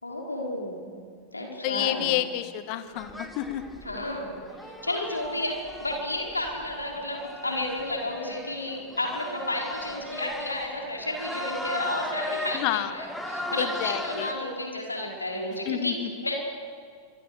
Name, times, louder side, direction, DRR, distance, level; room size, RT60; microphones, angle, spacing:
voice 1, 0.0-1.0 1.3-2.2 3.8-4.4 4.8-16.4, left 1 dB, 80° left, 0 dB, 4.9 m, -32 dB
voice 2, 1.6-3.6 12.5-12.9 13.6-14.3 15.7-16.1, left 13 dB, 45° left, 11 dB, 1.7 m, -29 dB
sound 1, 2.9-14.3, left 1 dB, 5° left, 2.9 m, -38 dB
26.5 x 25.5 x 6.7 m, 2.2 s
figure-of-eight pair, 90°, 0 cm